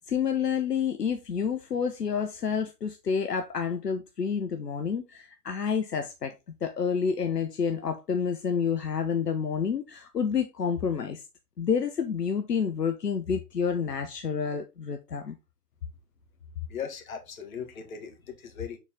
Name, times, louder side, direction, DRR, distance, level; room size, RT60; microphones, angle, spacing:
voice 1, 0.1-6.3 6.6-11.2 11.6-15.3, left 6 dB, 75° left, 1.1 m, -29 dB
voice 2, 16.7-18.8, left 7 dB, 55° left, 1.9 m, -38 dB
7.1 x 4.1 x 3.6 m
figure-of-eight pair, 115°, 48 cm